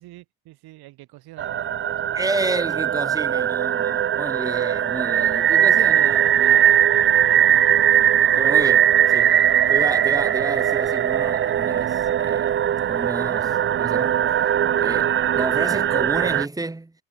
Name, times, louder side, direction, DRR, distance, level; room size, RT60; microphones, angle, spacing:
voice 1, 0.0-1.9 14.8-15.2, right 18 dB, 80° right, 6.2 m, -46 dB
sound 1, 1.4-16.5, right 10 dB, 35° right, 0.6 m, -20 dB
voice 2, 2.1-6.8 8.4-9.4 9.7-12.6 12.9-14.2 14.8-15.0 15.4-16.9, right 2 dB, 10° right, 2.1 m, -30 dB
cardioid pair, 115°, 37 cm